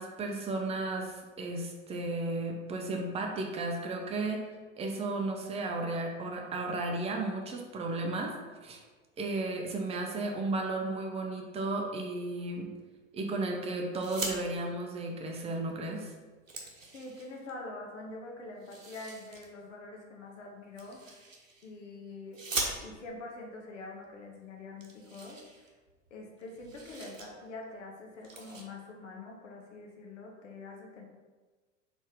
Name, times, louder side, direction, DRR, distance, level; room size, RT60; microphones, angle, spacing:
voice 1, 0.0-4.4 4.8-8.8 9.2-12.7 13.1-16.1, right 2 dB, 15° right, 2 dB, 0.6 m, -34 dB
sound 1, 13.9-14.4 15.7-15.8 16.1-17.5 18.6-19.5 20.8-21.7 22.3-23.2 24.1-24.2 24.4-24.5 24.8-26.1 26.4-27.3 27.6-27.8 28.2-28.6, right 3 dB, 80° right, 0.8 m, -40 dB
voice 2, 16.9-21.3 21.6-22.4 22.8-25.4 26.1-31.0, left 2 dB, 65° left, 0 dB, 1.0 m, -45 dB
4.2 x 3.5 x 3.5 m, 1.3 s
figure-of-eight pair, 80°, 39 cm